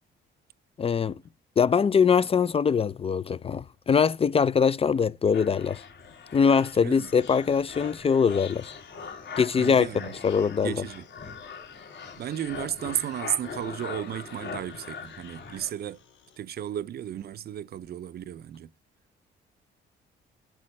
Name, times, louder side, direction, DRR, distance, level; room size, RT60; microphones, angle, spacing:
voice 1, 0.8-1.2 1.6-5.8 6.3-8.7 9.4-9.9 10.2-10.7, left 6 dB, 30° left, 0.4 m, -22 dB
sound 1, 5.3-15.7, left 5 dB, 60° left, 2.7 m, -41 dB
sound 2, 6.0-16.4, left 7 dB, 75° left, 4.4 m, -60 dB
voice 2, 6.8-7.1 9.6-10.2 10.6-11.0 12.2-16.0 16.4-18.7, right 11 dB, 50° right, 0.5 m, -34 dB
9.8 x 7.5 x 3.2 m
cardioid pair, 90°, 20 cm